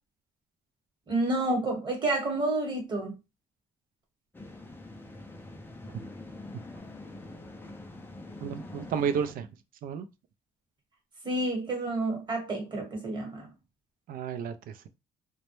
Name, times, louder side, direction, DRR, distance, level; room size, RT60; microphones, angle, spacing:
voice 1, 1.1-3.2 11.2-13.5, right 2 dB, 25° right, 1.1 m, -29 dB
sound 1, 4.3-9.3, left 2 dB, 10° left, 0.4 m, -45 dB
voice 2, 8.4-9.5 9.8-10.1 14.1-14.5, right 7 dB, 60° right, 0.4 m, -31 dB
2.2 x 2.0 x 3.0 m
cardioid pair, 110°, 17 cm